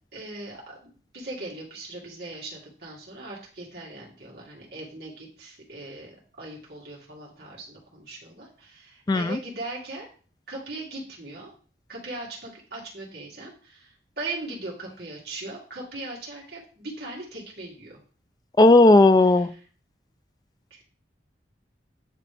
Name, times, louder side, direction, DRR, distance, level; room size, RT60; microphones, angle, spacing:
voice 1, 0.1-10.1 10.5-11.5 11.9-18.0 19.4-19.5 20.7-20.8, right 2 dB, 60° right, -4 dB, 2.2 m, -39 dB
voice 2, 9.1-9.4 18.6-19.5, left 2 dB, 20° left, 12 dB, 0.3 m, -15 dB
9.3 x 3.1 x 3.4 m, 0.40 s
head